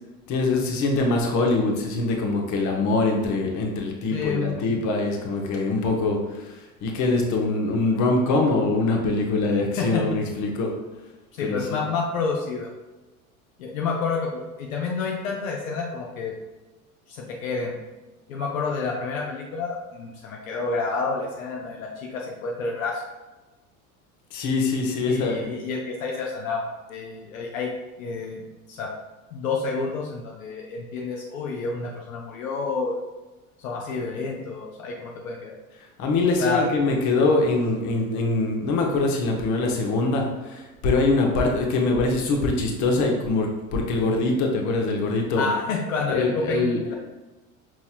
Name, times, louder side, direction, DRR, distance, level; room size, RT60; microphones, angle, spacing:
voice 1, 0.3-10.7 11.4-11.8 24.3-25.5 36.0-45.5 46.1-46.8, left 3 dB, 40° left, 1 dB, 0.9 m, -23 dB
voice 2, 4.1-4.6 9.8-10.0 11.3-12.7 13.6-16.3 17.1-17.8 18.3-23.0 25.1-27.7 28.0-28.4 28.7-28.9 29.3-33.0 33.6-35.5 36.4-36.7 45.4-46.9, left 4 dB, 70° left, -1 dB, 0.6 m, -29 dB
5.4 x 3.0 x 2.4 m, 1.1 s
figure-of-eight pair, 70°, 42 cm